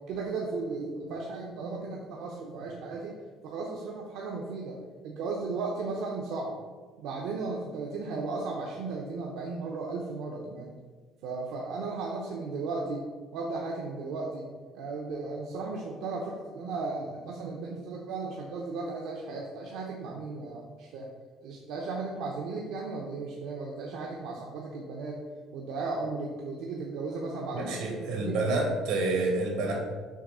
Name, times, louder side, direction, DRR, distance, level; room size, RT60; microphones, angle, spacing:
voice 1, 0.1-3.2 3.4-4.8 5.0-6.6 7.0-10.7 11.2-13.0 13.3-14.5 14.7-21.1 21.4-25.2 25.5-28.4, right 3 dB, 70° right, -1 dB, 0.7 m, -35 dB
voice 2, 27.5-29.7, right 2 dB, 90° right, 0 dB, 1.9 m, -28 dB
6.3 x 3.1 x 5.4 m, 1.5 s
cardioid pair, 165°, 0 cm